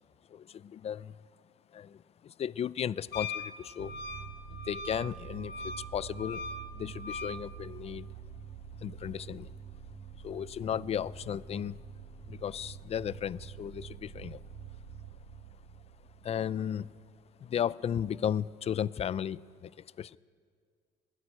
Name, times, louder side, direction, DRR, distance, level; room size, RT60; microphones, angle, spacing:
voice 1, 0.3-1.2 1.7-3.9 4.7-6.4 6.7-8.1 8.8-9.5 10.1-11.8 12.3-14.4 16.2-17.0 17.4-20.2, left 9 dB, 40° left, 0.4 m, -35 dB
Wind instrument woodwind instrument, 3.1-7.4, left 3 dB, 70° left, 1.2 m, -40 dB
sound 1, 3.8-17.2, right 7 dB, 65° right, 2.4 m, -47 dB
21.0 x 13.0 x 9.8 m
cardioid pair, 110°, 17 cm